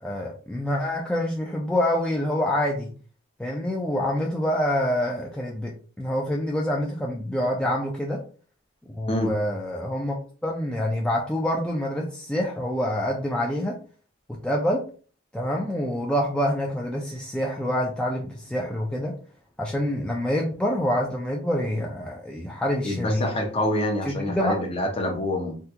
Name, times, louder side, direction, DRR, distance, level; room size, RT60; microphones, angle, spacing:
voice 1, 0.0-2.9 3.4-8.2 9.0-10.2 10.4-13.8 14.3-14.8 15.3-19.2 19.6-23.3 24.1-24.6, left 1 dB, 5° left, -2 dB, 0.4 m, -26 dB
voice 2, 22.8-25.6, left 1 dB, 30° left, 3 dB, 0.7 m, -26 dB
3.5 x 2.3 x 2.8 m, 0.40 s
head